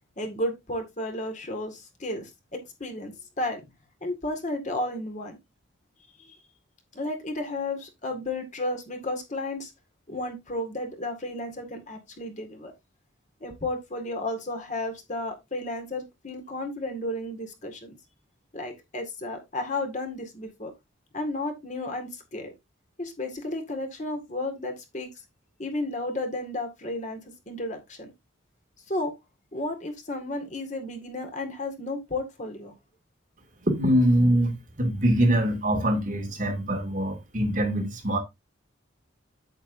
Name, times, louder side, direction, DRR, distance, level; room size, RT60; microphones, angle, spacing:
voice 1, 0.2-3.6 4.0-5.4 6.2-6.4 6.9-9.7 10.1-12.7 13.4-18.0 18.5-20.7 21.1-22.5 23.0-25.1 25.6-28.1 28.9-29.1 29.5-32.7, left 2 dB, 35° left, 2.0 m, -33 dB
voice 2, 33.7-38.2, equal, 40° right, 2.3 m, -23 dB
8.7 x 8.0 x 2.6 m
head